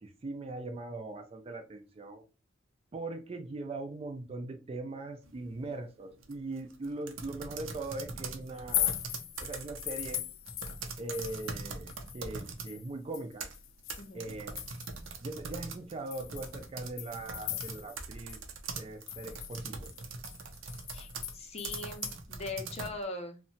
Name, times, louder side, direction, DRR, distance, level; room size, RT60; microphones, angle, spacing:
voice 1, 0.0-2.2 2.9-8.9 9.4-10.2 11.0-13.5 14.1-14.6 15.2-18.4 18.8-19.9, right 2 dB, 30° right, 0.4 m, -40 dB
sound 1, 5.2-5.6 6.1-12.7 13.2-23.0, right 4 dB, 85° right, 0.5 m, -42 dB
sound 2, 8.5-11.6 11.9-15.1 15.5-15.6 16.1-18.0 18.3-18.4 18.7-22.2, left 13 dB, 85° left, 0.3 m, -39 dB
voice 2, 14.0-14.3 17.4-17.5 20.9-21.1 21.3-23.4, left 3 dB, 35° left, 0.5 m, -41 dB
2.8 x 2.1 x 2.6 m
head